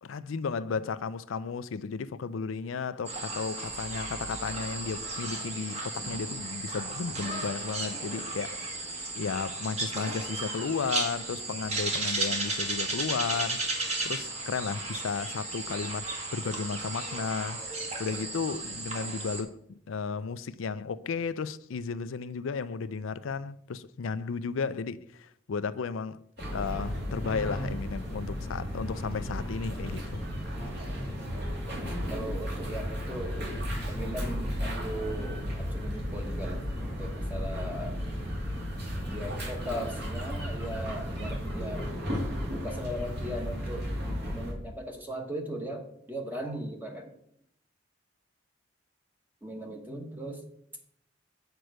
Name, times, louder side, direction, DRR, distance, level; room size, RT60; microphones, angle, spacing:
voice 1, 0.0-8.7 9.2-13.6 14.0-16.1 16.3-17.6 18.0-26.2 26.5-30.3, left 5 dB, 85° left, 0.4 m, -34 dB
sound 1, 3.0-19.4, right 2 dB, 35° right, 1.5 m, -34 dB
sound 2, 26.4-44.5, equal, 55° right, 2.6 m, -34 dB
voice 2, 32.1-33.4 33.9-38.0 39.1-41.9 42.5-43.9 44.3-47.1 49.4-50.4, equal, 10° right, 1.0 m, -38 dB
8.0 x 4.5 x 6.3 m
head